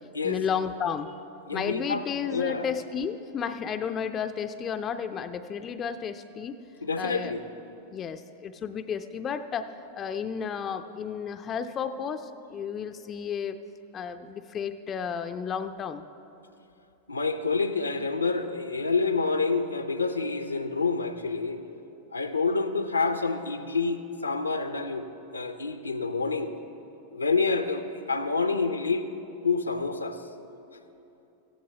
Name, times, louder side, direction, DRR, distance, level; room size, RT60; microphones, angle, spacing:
voice 1, 0.2-1.2 1.5-6.6 7.0-7.4 7.9-13.6 13.9-16.0, left 7 dB, 25° left, 10 dB, 0.5 m, -32 dB
voice 2, 1.5-2.0 2.3-2.7 6.8-7.4 17.1-21.6 22.1-25.0 25.3-26.5 27.1-29.0 29.4-30.2, left 4 dB, 80° left, 9 dB, 0.7 m, -28 dB
17.0 x 15.0 x 3.3 m, 2.9 s
figure-of-eight pair, 90°, 0 cm